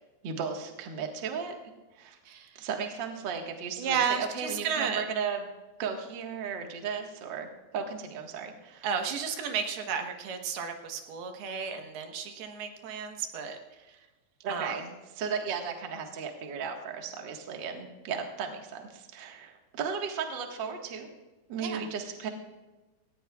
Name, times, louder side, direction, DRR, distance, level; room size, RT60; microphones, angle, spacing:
voice 1, 0.2-1.5 2.0-2.2 2.6-5.5 5.8-7.5 7.7-8.9 14.4-21.1 21.5-22.3, right 6 dB, 50° right, 3 dB, 1.4 m, -35 dB
voice 2, 2.3-2.6 3.8-5.0 8.8-14.0 14.5-14.8 21.6-21.8, right 6 dB, 90° right, 4 dB, 3.3 m, -33 dB
18.0 x 16.5 x 2.4 m, 1.2 s
omnidirectional pair, 4.4 m